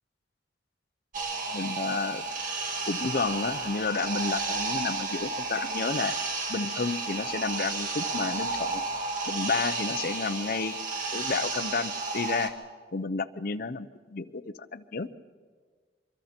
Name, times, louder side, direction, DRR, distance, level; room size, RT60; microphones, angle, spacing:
sound 1, 1.1-12.5, right 3 dB, 50° right, 1.7 m, -32 dB
voice 1, 1.5-2.2 2.9-6.2 6.5-8.8 9.3-10.8 11.1-12.5 12.9-15.2, left 4 dB, 55° left, 10 dB, 0.7 m, -31 dB
25.5 x 23.5 x 4.4 m, 1.5 s
head